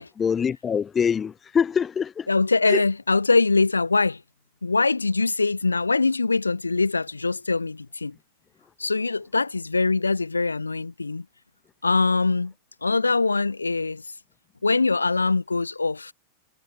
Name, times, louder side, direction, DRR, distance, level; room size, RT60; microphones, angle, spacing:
voice 1, 0.2-2.3 2.7-2.8, left 7 dB, 20° left, 1.8 m, -24 dB
voice 2, 2.3-4.2 4.6-8.1 8.8-11.2 11.8-12.5 12.8-14.0 14.6-16.1, left 3 dB, 80° left, 0.6 m, -23 dB
figure-of-eight pair, 90°, 0 cm